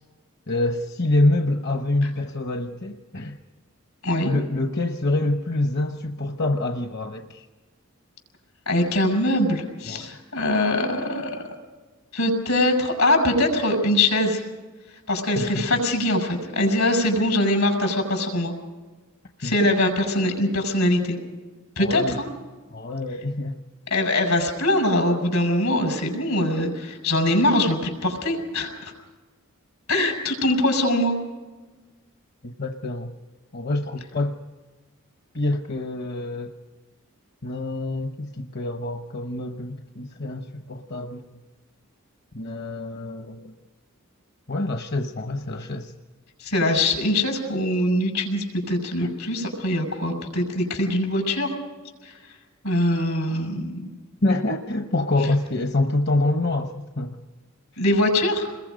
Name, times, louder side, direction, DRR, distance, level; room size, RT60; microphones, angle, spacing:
voice 1, 0.5-3.4 4.2-7.5 9.9-10.1 15.4-15.7 19.4-19.5 21.8-22.2 22.7-23.6 32.4-33.1 33.5-34.4 35.3-36.5 37.4-41.3 42.3-43.5 44.5-45.9 49.0-49.1 54.2-57.2, left 2 dB, 50° left, 4 dB, 1.0 m, -26 dB
voice 2, 8.7-11.5 12.1-14.4 15.1-18.5 19.4-21.2 21.8-22.3 23.9-28.9 29.9-31.2 46.4-51.5 52.0-52.2 52.6-53.9 57.8-58.5, left 1 dB, 85° left, 3 dB, 6.3 m, -22 dB
29.0 x 21.5 x 5.2 m, 1.3 s
head